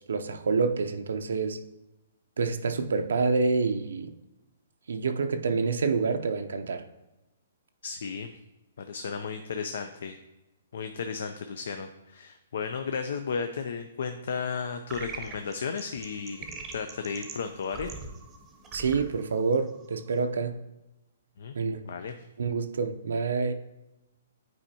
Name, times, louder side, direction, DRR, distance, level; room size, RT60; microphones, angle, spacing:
voice 1, 0.1-1.6 2.4-4.1 4.9-6.8 18.7-20.6 21.5-21.8 22.4-23.5, right 4 dB, 85° right, 7 dB, 0.5 m, -27 dB
voice 2, 7.8-8.3 8.8-10.2 10.7-17.9 21.4-21.6 21.8-22.3, left 5 dB, 70° left, 7 dB, 0.4 m, -34 dB
sound 1, 14.9-20.2, right 4 dB, 15° right, 0.7 m, -43 dB
8.7 x 4.5 x 2.8 m, 0.98 s
hypercardioid pair, 155°, 0 cm